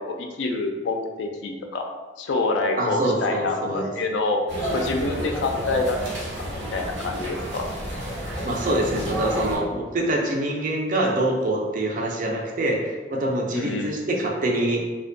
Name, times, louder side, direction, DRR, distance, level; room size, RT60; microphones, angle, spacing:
voice 1, 0.0-1.9 2.2-4.4 4.7-6.2 6.7-7.7 13.5-14.0, left 3 dB, 80° left, 3 dB, 0.4 m, -26 dB
voice 2, 2.8-3.9 8.4-14.8, right 1 dB, 45° right, 0 dB, 0.4 m, -25 dB
sound 1, 4.5-9.6, right 1 dB, 80° right, 0.7 m, -30 dB
2.5 x 2.1 x 2.5 m, 1.3 s
head